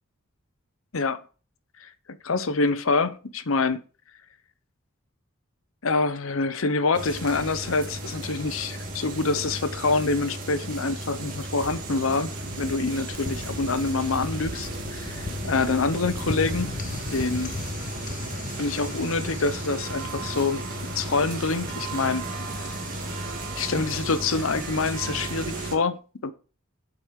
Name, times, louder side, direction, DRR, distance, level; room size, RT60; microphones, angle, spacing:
voice 1, 1.8-3.8 5.8-12.3 12.6-16.7 17.1-17.5 18.6-22.2 23.6-26.3, left 3 dB, 75° left, 0.8 m, -26 dB
sound 1, 6.9-25.8, right 2 dB, 40° right, 2.2 m, -35 dB
sound 2, 11.6-17.7, right 3 dB, 65° right, 1.4 m, -45 dB
sound 3, 12.8-25.3, left 3 dB, 40° left, 0.6 m, -38 dB
7.6 x 5.2 x 6.5 m
head